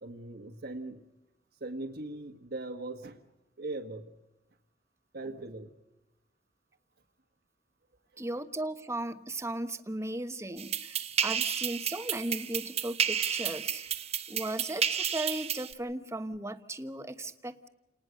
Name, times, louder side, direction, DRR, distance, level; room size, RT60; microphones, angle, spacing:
voice 1, 0.0-1.0 1.6-3.2 3.6-4.1 5.1-5.7, right 2 dB, 60° right, 5 dB, 1.5 m, -39 dB
voice 2, 8.2-13.8 14.3-17.7, right 1 dB, 15° right, 9 dB, 1.2 m, -36 dB
sound 1, 10.6-15.7, right 7 dB, 35° right, 1.1 m, -32 dB
29.5 x 19.5 x 6.5 m, 0.98 s
head